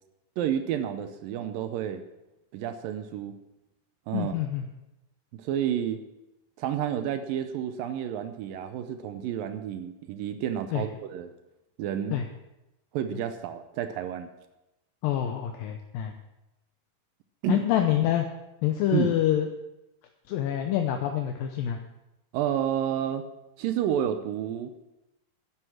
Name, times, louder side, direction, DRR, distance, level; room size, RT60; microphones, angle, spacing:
voice 1, 0.4-2.0 2.5-3.4 4.1-4.3 5.3-6.0 6.6-11.3 11.8-12.2 12.9-14.3 17.4-17.6 18.9-19.1 22.3-23.2 23.6-24.7, right 10 dB, 80° right, 9 dB, 2.2 m, -30 dB
voice 2, 4.1-4.6 10.7-10.8 12.1-12.3 15.0-16.1 17.5-18.3 18.6-19.5 20.3-21.8, left 11 dB, 75° left, 4 dB, 2.3 m, -26 dB
11.0 x 9.9 x 6.0 m, 0.94 s
omnidirectional pair, 4.5 m